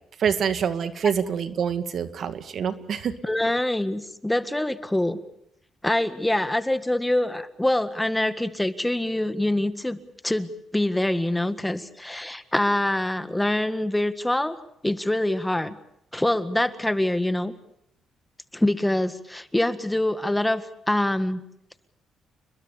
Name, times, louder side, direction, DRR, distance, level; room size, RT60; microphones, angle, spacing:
voice 1, 0.2-3.1, right 7 dB, 60° right, 10 dB, 2.1 m, -26 dB
voice 2, 3.2-5.2 5.8-10.0 10.2-14.6 14.8-15.8 16.1-17.5 18.5-21.4, left 1 dB, 10° left, 11 dB, 1.7 m, -25 dB
29.5 x 21.5 x 7.1 m, 0.75 s
cardioid pair, 90°, 0 cm